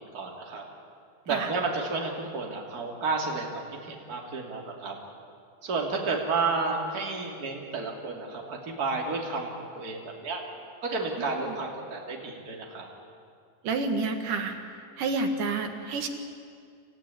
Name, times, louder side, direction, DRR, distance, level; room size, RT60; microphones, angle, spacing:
voice 1, 0.1-0.6 1.3-4.9 5.6-10.4 10.8-12.9, right 3 dB, 25° right, 0 dB, 2.9 m, -31 dB
voice 2, 11.2-11.5 13.6-14.6 15.0-16.1, right 3 dB, 65° right, 5 dB, 3.2 m, -29 dB
28.0 x 15.0 x 9.9 m, 2.3 s
omnidirectional pair, 4.2 m